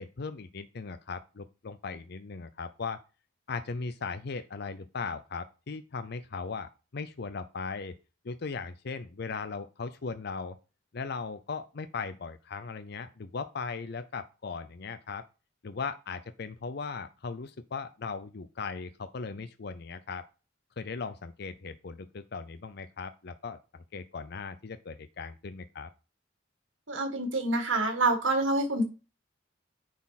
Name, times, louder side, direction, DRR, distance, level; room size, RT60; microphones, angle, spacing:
voice 1, 0.0-3.0 3.5-7.9 8.2-10.6 10.9-15.3 15.6-20.3 20.8-25.9, left 4 dB, 60° left, 10 dB, 0.6 m, -38 dB
voice 2, 26.9-28.8, right 2 dB, 90° right, 4 dB, 2.0 m, -27 dB
9.4 x 4.3 x 4.1 m, 0.31 s
head